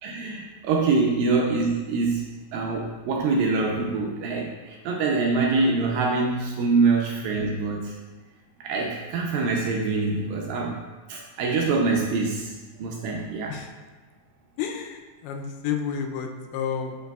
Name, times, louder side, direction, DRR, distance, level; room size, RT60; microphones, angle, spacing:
voice 1, 0.0-2.3 2.5-8.0 8.6-10.7 11.1-12.5 12.8-13.5, right 3 dB, 80° right, -1 dB, 2.2 m, -24 dB
voice 2, 14.6-17.0, left 7 dB, 85° left, 4 dB, 2.5 m, -31 dB
9.2 x 4.8 x 2.3 m, 1.3 s
omnidirectional pair, 4.5 m